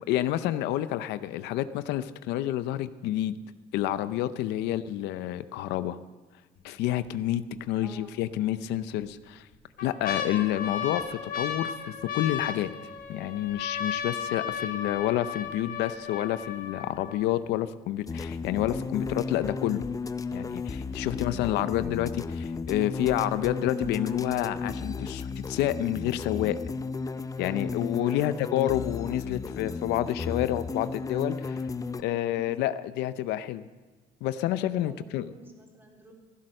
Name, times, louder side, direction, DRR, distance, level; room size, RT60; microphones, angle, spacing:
voice 1, 0.0-3.4 3.7-6.0 6.6-9.5 9.8-12.7 13.1-19.9 20.3-22.1 22.4-26.6 27.4-31.6 32.0-33.6 34.2-35.3, left 13 dB, 90° left, 14 dB, 0.6 m, -29 dB
sound 1, 6.6-7.1 7.5-7.6 8.6-9.1 9.5-17.5 18.2-18.3 18.5-19.0 19.4-19.5, left 7 dB, 65° left, 3.1 m, -35 dB
voice 2, 7.8-8.2 21.0-22.0 28.0-28.4 32.4-32.6 34.8-36.1, right 1 dB, 15° right, -1 dB, 3.5 m, -49 dB
sound 2, 18.1-32.0, left 4 dB, 20° left, 0.5 m, -34 dB
15.5 x 11.0 x 6.5 m, 1.3 s
cardioid pair, 110°, 17 cm